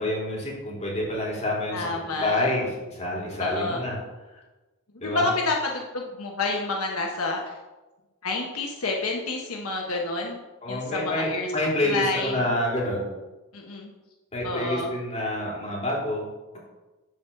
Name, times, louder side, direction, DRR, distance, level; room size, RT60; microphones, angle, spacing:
voice 1, 0.0-3.9 5.0-5.3 10.6-13.1 14.3-16.3, left 1 dB, 30° left, -4 dB, 3.5 m, -28 dB
voice 2, 1.7-2.5 3.4-3.8 5.0-7.5 8.2-10.4 10.7-11.5 11.8-12.5 13.5-13.9 14.4-14.9, left 3 dB, 80° left, 0 dB, 1.2 m, -29 dB
11.0 x 4.7 x 6.9 m, 1.1 s
head